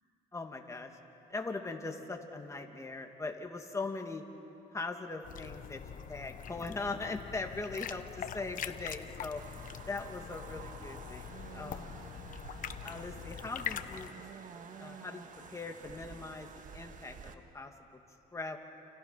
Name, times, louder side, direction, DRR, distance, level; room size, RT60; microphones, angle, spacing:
voice 1, 0.3-0.9 1.3-4.2 4.7-5.8 6.1-9.4 9.9-12.0 12.8-14.5 14.8-16.5 16.7-17.7 18.3-18.6, left 3 dB, 15° left, 3 dB, 2.3 m, -40 dB
sound 1, 5.2-14.1, left 9 dB, 55° left, 1.0 m, -43 dB
sound 2, 9.4-17.3, right 6 dB, 50° right, 1.7 m, -50 dB
29.5 x 28.5 x 5.9 m, 2.9 s
cardioid pair, 110°, 17 cm